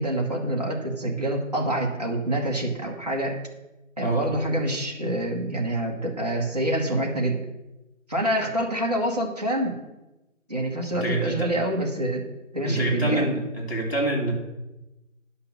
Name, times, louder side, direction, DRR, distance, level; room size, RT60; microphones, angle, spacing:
voice 1, 0.0-3.4 4.0-7.4 8.1-9.8 10.5-12.3 12.5-13.2, right 1 dB, 30° right, -2 dB, 1.4 m, -26 dB
voice 2, 10.9-11.5 12.6-14.3, right 2 dB, 50° left, -2 dB, 2.9 m, -26 dB
10.0 x 5.7 x 6.5 m, 0.99 s
figure-of-eight pair, 180°, 40 cm